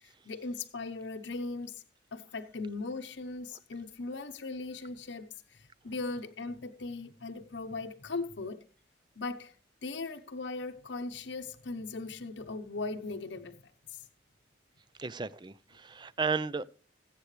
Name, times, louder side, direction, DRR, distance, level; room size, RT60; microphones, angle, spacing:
voice 1, 0.0-1.8 2.1-8.6 9.2-9.6 9.8-14.1, left 3 dB, 80° left, 0.9 m, -39 dB
voice 2, 15.0-16.6, right 5 dB, 25° right, 0.5 m, -33 dB
21.0 x 8.4 x 3.3 m
head